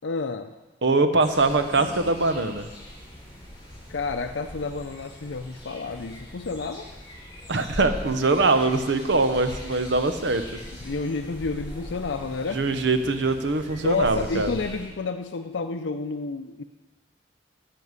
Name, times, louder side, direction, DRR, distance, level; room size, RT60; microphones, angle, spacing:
voice 1, 0.0-0.5 3.9-6.8 10.8-12.6 13.8-16.6, left 4 dB, 75° left, 7 dB, 0.6 m, -30 dB
voice 2, 0.8-2.7 7.5-10.4 12.5-14.5, right 3 dB, 70° right, 8 dB, 0.9 m, -22 dB
sound 1, 1.2-14.8, equal, 20° left, 4.9 m, -41 dB
12.5 x 6.7 x 8.1 m, 1.2 s
head